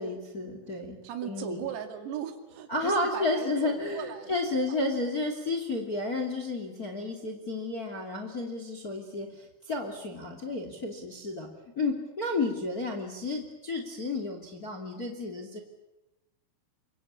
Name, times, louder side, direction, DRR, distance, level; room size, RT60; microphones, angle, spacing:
voice 1, 0.0-1.6 2.7-11.5 11.8-15.6, left 2 dB, 30° left, 4 dB, 1.9 m, -32 dB
voice 2, 1.0-4.8, right 9 dB, 90° right, 6 dB, 5.2 m, -38 dB
27.0 x 24.5 x 8.7 m, 0.96 s
omnidirectional pair, 5.9 m